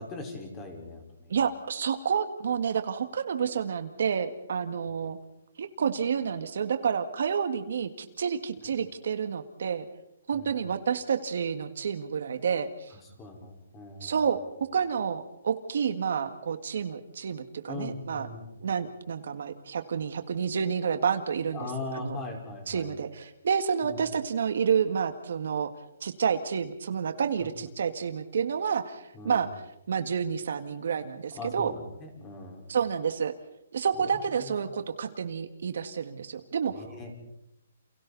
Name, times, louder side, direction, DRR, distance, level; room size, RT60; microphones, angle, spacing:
voice 1, 0.0-1.3 10.3-10.5 13.2-14.2 17.7-18.4 21.5-22.9 23.8-24.0 29.1-29.4 31.3-32.7 36.7-37.1, left 3 dB, 15° left, 2 dB, 4.6 m, -39 dB
voice 2, 1.3-5.2 5.6-9.9 10.3-13.0 14.0-14.4 14.7-18.3 18.6-22.2 22.7-25.7 26.0-29.5 29.9-31.7 32.7-33.3 33.7-36.9, right 7 dB, 65° right, 9 dB, 1.9 m, -29 dB
30.0 x 28.5 x 4.2 m, 0.83 s
hypercardioid pair, 170°, 0 cm